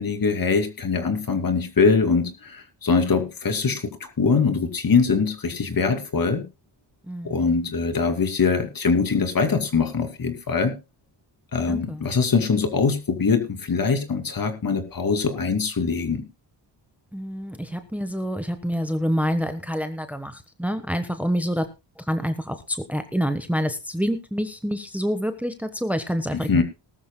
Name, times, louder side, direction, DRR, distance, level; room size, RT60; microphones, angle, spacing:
voice 1, 0.0-6.4 7.2-10.7 11.5-16.2 26.3-26.6, left 5 dB, 50° left, 7 dB, 2.6 m, -23 dB
voice 2, 7.1-7.4 11.7-12.0 17.1-21.7 22.0-26.6, equal, 5° right, 9 dB, 1.2 m, -27 dB
19.5 x 13.0 x 2.2 m, 0.27 s
wide cardioid pair, 110°, 44 cm